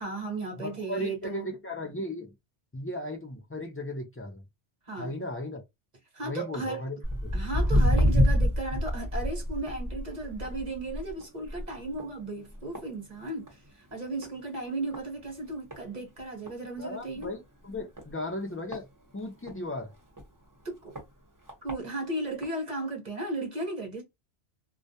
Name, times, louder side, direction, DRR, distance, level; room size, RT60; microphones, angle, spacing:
voice 1, 0.0-1.5 4.9-5.2 6.1-6.8 7.3-17.3 20.6-20.9 21.6-24.0, right 2 dB, 40° right, 1.0 m, -35 dB
voice 2, 0.6-2.3 2.7-4.4 5.0-5.6 6.2-7.3 16.8-18.9 19.1-19.9, left 1 dB, 20° left, 0.3 m, -36 dB
Walk footsteps, 7.0-13.7 14.0-14.4 14.9-15.0 15.7-15.8 16.2-16.3 16.5-16.6 17.1-17.3 18.0-19.6 20.1-20.2 21.0-21.1 21.5-21.7 22.4-22.5, equal, 20° right, 0.8 m, -27 dB
2.2 x 2.2 x 2.7 m
omnidirectional pair, 1.1 m